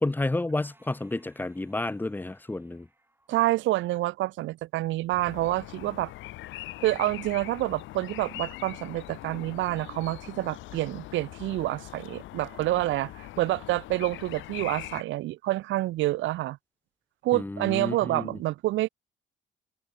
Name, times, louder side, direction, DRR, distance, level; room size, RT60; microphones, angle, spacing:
voice 1, 0.0-2.9 17.3-18.4, left 2 dB, 10° left, 0.5 m, -30 dB
sound 1, 0.6-4.2, right 1 dB, 10° right, 5.1 m, -65 dB
voice 2, 3.3-6.1 6.8-16.6 17.2-18.9, right 16 dB, 75° right, 0.4 m, -28 dB
sound 2, 5.1-15.0, left 16 dB, 75° left, 0.4 m, -42 dB
cardioid pair, 90°, 20 cm